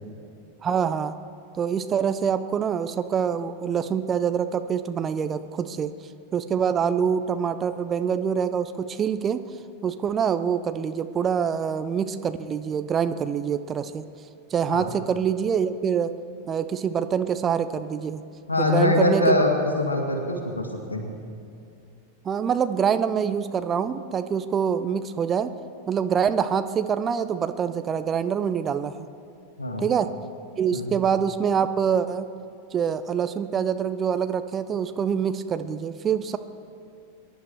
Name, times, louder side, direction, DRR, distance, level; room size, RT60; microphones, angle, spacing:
voice 1, 0.6-1.1 1.5-5.9 6.3-9.4 9.8-14.0 14.5-16.1 16.5-18.2 18.6-19.4 22.2-25.5 25.9-29.1 29.8-30.1 30.6-32.3 32.7-36.4, right 7 dB, 25° right, 11 dB, 0.6 m, -25 dB
voice 2, 18.5-21.2 29.6-29.9 30.7-30.9, left 2 dB, 80° left, 3 dB, 2.1 m, -23 dB
23.0 x 11.0 x 4.7 m, 2.6 s
figure-of-eight pair, 90°, 0 cm